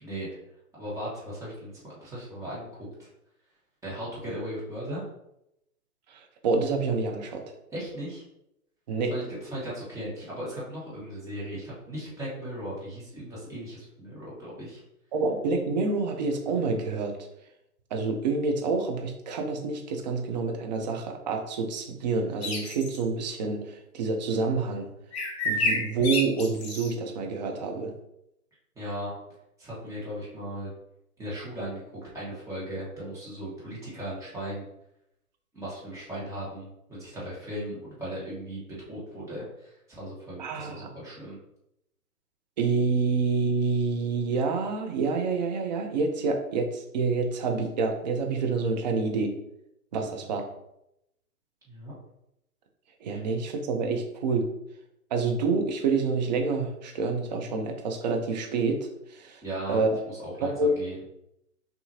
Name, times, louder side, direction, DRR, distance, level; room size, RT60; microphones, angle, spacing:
voice 1, 0.7-2.7 3.0-3.1 3.8-5.0 7.7-8.2 9.1-14.8 28.7-29.1 29.6-30.7 31.2-31.8 32.1-34.6 35.5-38.6 38.9-41.4 50.0-50.3 51.7-51.9 59.4-59.8 60.1-61.0, right 1 dB, 5° right, -8 dB, 1.5 m, -37 dB
voice 2, 6.1-7.4 8.9-9.1 15.1-17.1 17.9-24.9 25.4-27.9 40.4-40.9 42.6-49.3 49.9-50.5 53.0-54.5 55.1-59.4 59.7-60.0 60.4-60.7, right 4 dB, 30° right, 3 dB, 0.6 m, -27 dB
sound 1, 22.4-23.0 25.1-26.9, left 2 dB, 45° left, 1.1 m, -29 dB
5.8 x 2.8 x 2.8 m, 0.83 s
hypercardioid pair, 135°, 44 cm